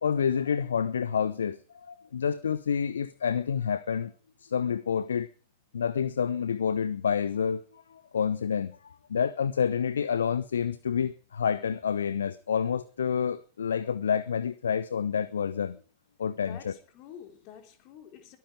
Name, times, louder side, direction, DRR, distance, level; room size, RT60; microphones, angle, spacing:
voice 1, 0.0-4.1 4.4-5.3 5.7-15.8 16.2-16.7, left 7 dB, 70° left, 0.7 m, -28 dB
voice 2, 16.4-18.4, left 9 dB, 40° left, 3.5 m, -48 dB
22.5 x 9.4 x 4.8 m
figure-of-eight pair, 90°, 0 cm